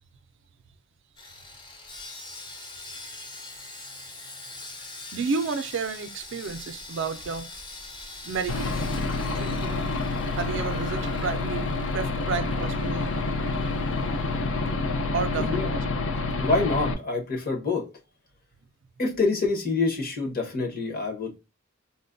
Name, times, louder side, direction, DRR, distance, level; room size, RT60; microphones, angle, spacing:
Sawing, 1.2-15.4 15.7-15.8 16.3-16.4, left 2 dB, 20° left, 0.6 m, -43 dB
voice 1, 5.1-7.5 8.2-8.7 9.3-9.8 10.3-13.2 15.1-15.8, right 5 dB, 60° right, 0.4 m, -31 dB
Aircraft / Engine, 8.5-16.9, left 3 dB, 65° left, 0.6 m, -28 dB
voice 2, 15.4-15.7 16.4-17.9 19.0-21.4, left 3 dB, 45° left, 1.1 m, -26 dB
4.0 x 2.2 x 2.5 m
head